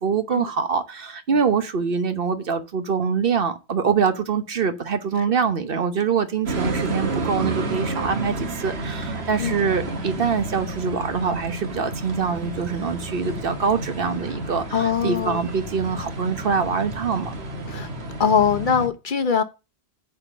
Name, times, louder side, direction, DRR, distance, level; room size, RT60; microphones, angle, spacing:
voice 1, 0.0-17.3, right 6 dB, 60° right, 1.1 m, -24 dB
sound 1, 6.5-18.9, right 2 dB, 75° right, 1.6 m, -30 dB
voice 2, 14.7-15.4 17.7-17.9 18.2-19.4, left 6 dB, 50° left, 0.9 m, -21 dB
9.0 x 4.2 x 6.5 m
omnidirectional pair, 1.1 m